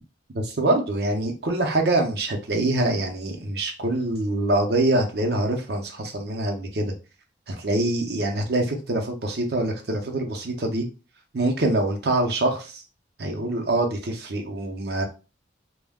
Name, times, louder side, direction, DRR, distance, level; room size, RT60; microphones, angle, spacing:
voice 1, 0.3-6.9 7.5-10.9 11.3-12.8 13.2-15.0, right 2 dB, 55° right, 3 dB, 0.6 m, -25 dB
3.4 x 2.2 x 2.2 m, 0.32 s
head